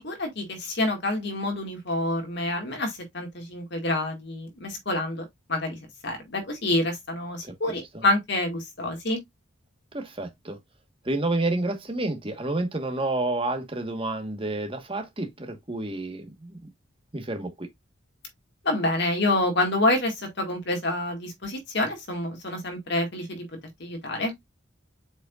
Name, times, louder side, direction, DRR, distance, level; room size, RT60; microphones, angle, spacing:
voice 1, 0.0-9.2 18.6-23.4 23.8-24.3, left 1 dB, 55° left, 2.0 m, -27 dB
voice 2, 7.4-8.0 9.9-10.6 11.0-16.6 17.1-17.7, right 2 dB, 25° right, 1.4 m, -30 dB
7.5 x 5.2 x 2.5 m
head